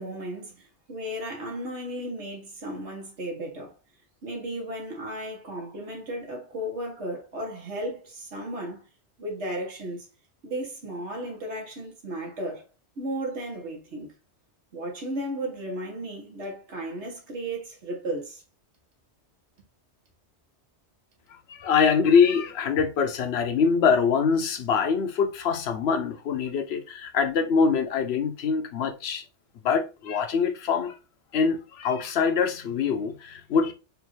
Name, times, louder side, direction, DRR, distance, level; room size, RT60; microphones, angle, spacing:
voice 1, 0.0-3.8 4.2-8.8 9.2-10.1 10.4-12.6 13.0-14.1 14.7-18.4, right 1 dB, 80° right, 1.7 m, -34 dB
voice 2, 21.5-29.2 29.6-30.9 31.3-33.7, left 6 dB, 70° left, 0.9 m, -24 dB
4.5 x 2.5 x 3.1 m
omnidirectional pair, 1.2 m